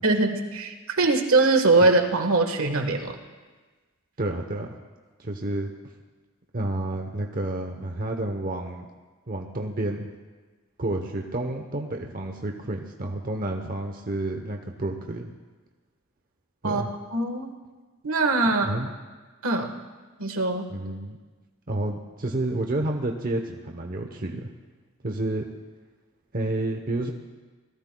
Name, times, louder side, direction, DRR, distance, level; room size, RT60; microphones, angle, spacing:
voice 1, 0.0-3.2 16.6-16.8 17.1-17.5 18.0-18.7 19.4-19.7 20.2-20.7, right 3 dB, 70° right, 5 dB, 1.4 m, -22 dB
voice 2, 4.2-4.7 5.2-5.7 6.5-8.9 9.3-10.1 10.8-15.3 16.6-16.9 18.6-18.9 20.7-21.2 21.7-24.5 25.0-25.5 26.3-27.1, right 1 dB, 40° right, 2 dB, 0.8 m, -30 dB
25.5 x 18.0 x 2.3 m, 1.3 s
head